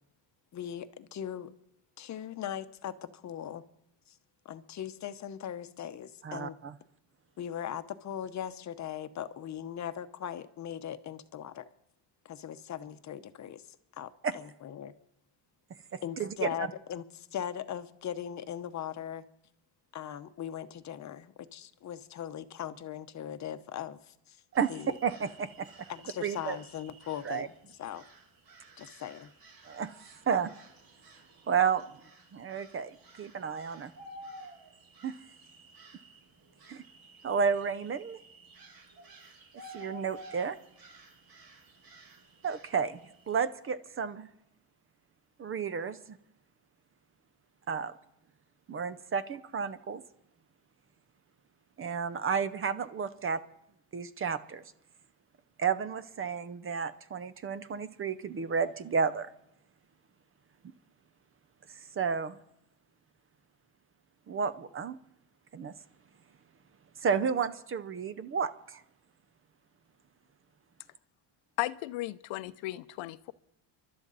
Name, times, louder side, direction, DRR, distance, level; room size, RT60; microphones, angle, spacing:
voice 1, 0.5-1.5 2.0-3.6 4.4-6.6 7.4-11.7 12.2-14.9 16.0-19.2 19.9-24.4 24.7-25.0 25.9-27.5 27.8-28.0 28.8-29.3, left 9 dB, 40° left, 0.9 m, -39 dB
voice 2, 6.2-6.7 14.2-14.3 16.2-16.5 24.5-24.7 25.0-25.7 26.2-26.6 27.2-27.5 29.7-29.9 30.3-30.5 31.5-31.8 32.3-33.9 35.0-35.1 36.7-36.8 37.2-38.2 39.7-40.6 42.4-43.0 43.3-44.3 45.4-46.0 47.7-47.9 48.7-50.0 51.8-53.4 53.9-54.6 55.6-59.3 62.0-62.3 64.3-65.0 65.5-65.7 67.0-68.8, right 6 dB, 30° right, 0.6 m, -31 dB
sound 1, 24.5-43.4, right 1 dB, 50° right, 2.8 m, -53 dB
voice 3, 71.6-73.3, left 17 dB, 85° left, 0.7 m, -35 dB
29.0 x 12.0 x 4.0 m
cardioid pair, 135°, 45 cm